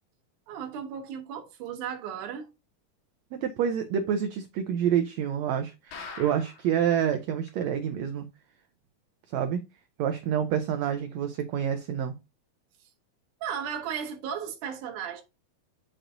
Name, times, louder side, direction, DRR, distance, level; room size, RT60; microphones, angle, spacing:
voice 1, 0.5-2.5 13.4-15.2, right 8 dB, 70° right, 2.6 m, -35 dB
voice 2, 3.3-8.3 9.3-9.6 10.0-12.1, right 8 dB, 85° right, 1.5 m, -28 dB
sound 1, 5.9-6.8 7.1-7.2 7.5-7.6 8.1-8.2, left 4 dB, 80° left, 3.1 m, -42 dB
7.8 x 6.0 x 2.5 m
omnidirectional pair, 4.0 m